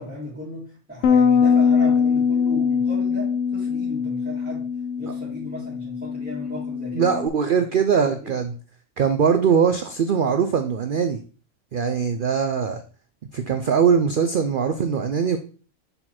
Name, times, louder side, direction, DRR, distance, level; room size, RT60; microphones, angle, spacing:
voice 1, 0.0-4.7 5.0-7.2 7.6-7.7 8.0-8.4, left 1 dB, 5° right, -9 dB, 2.2 m, -36 dB
Bass guitar, 1.0-7.3, left 6 dB, 65° left, 0.9 m, -22 dB
voice 2, 6.9-8.5 9.0-11.2 11.7-12.8 13.3-15.4, right 6 dB, 70° right, 7 dB, 0.5 m, -21 dB
6.7 x 4.3 x 4.3 m, 0.38 s
omnidirectional pair, 1.5 m